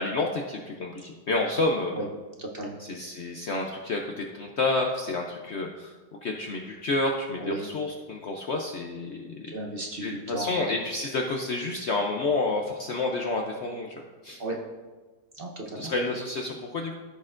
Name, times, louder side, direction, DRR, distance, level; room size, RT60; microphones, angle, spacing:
voice 1, 0.0-2.0 2.8-5.9 6.2-9.5 10.0-14.4 15.8-16.9, left 2 dB, 60° left, 1 dB, 0.7 m, -29 dB
voice 2, 2.4-2.8 7.4-7.6 9.5-10.6 14.4-14.6 15.3-15.9, right 1 dB, 40° right, -1 dB, 1.0 m, -34 dB
14.0 x 6.5 x 2.5 m, 1.3 s
omnidirectional pair, 1.7 m